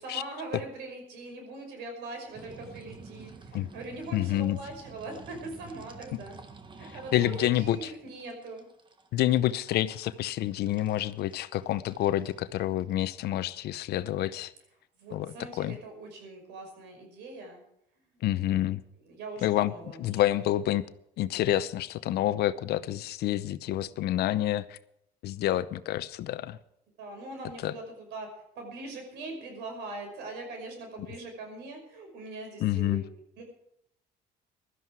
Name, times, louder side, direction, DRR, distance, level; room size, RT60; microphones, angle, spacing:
voice 1, 0.0-6.4 6.7-8.7 15.0-17.6 18.0-18.6 19.0-20.2 27.0-33.0 33.4-33.5, right 2 dB, 85° right, 4 dB, 5.6 m, -42 dB
sound 1, 2.3-13.9, right 4 dB, 30° right, 1.6 m, -50 dB
voice 2, 4.1-4.6 7.1-7.9 9.1-14.5 15.1-15.8 18.2-18.8 19.4-19.7 20.0-20.9 21.2-24.8 25.2-26.6 27.6-27.7 32.6-33.0, left 13 dB, 75° left, 15 dB, 0.8 m, -28 dB
16.5 x 13.0 x 4.7 m, 0.77 s
cardioid pair, 110°, 17 cm